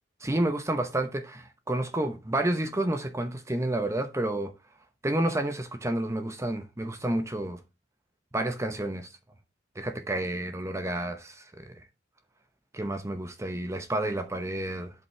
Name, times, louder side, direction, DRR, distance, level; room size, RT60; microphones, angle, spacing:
voice 1, 0.2-4.5 5.0-7.6 8.3-9.1 9.8-11.8 12.7-14.9, right 1 dB, 15° right, 0.8 m, -30 dB
11.0 x 5.5 x 3.1 m
head